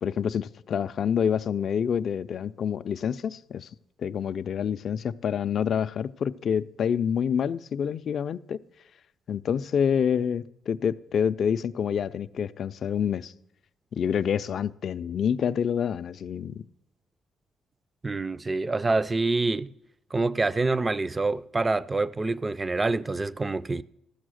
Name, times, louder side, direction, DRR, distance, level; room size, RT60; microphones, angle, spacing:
voice 1, 0.0-3.7 4.0-8.6 9.3-13.3 13.9-16.6, left 7 dB, 60° left, 0.3 m, -27 dB
voice 2, 18.0-19.7 20.1-23.8, right 3 dB, 25° right, 0.3 m, -26 dB
14.0 x 6.2 x 6.3 m
cardioid pair, 90°, 0 cm